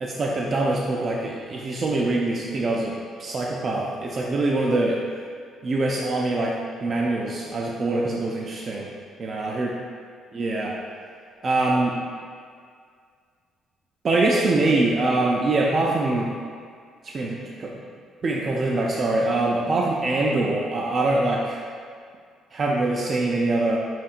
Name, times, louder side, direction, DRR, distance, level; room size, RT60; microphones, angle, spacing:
voice 1, 0.0-5.0 5.6-8.9 9.2-9.7 10.3-10.8 11.4-12.0 14.0-16.3 17.0-17.8 18.2-21.6 22.5-23.8, right 2 dB, 45° right, -2 dB, 0.4 m, -24 dB
5.7 x 2.7 x 2.4 m, 2.1 s
supercardioid pair, 60°, 0 cm